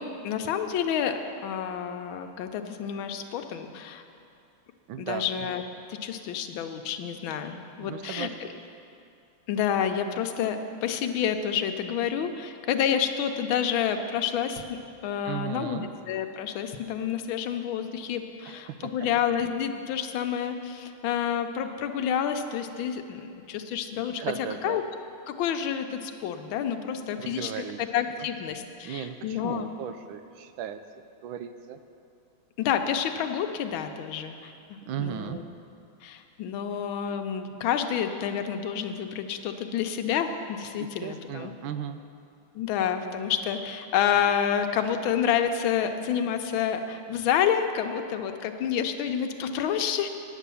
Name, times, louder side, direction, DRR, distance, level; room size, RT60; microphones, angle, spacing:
voice 1, 0.0-4.0 5.0-5.6 5.9-8.3 9.5-24.2 24.6-24.8 25.3-29.7 32.6-34.5 35.0-35.4 36.0-41.5 42.5-50.1, left 8 dB, 75° left, 6 dB, 1.4 m, -29 dB
voice 2, 4.9-5.3 7.8-8.5 15.2-15.9 18.4-18.9 24.0-24.8 27.2-27.8 28.2-28.3 28.8-30.8 31.2-31.8 34.9-35.4 40.8-42.0, right 9 dB, 75° right, 10 dB, 1.3 m, -36 dB
9.5 x 8.3 x 6.9 m, 2.6 s
omnidirectional pair, 2.3 m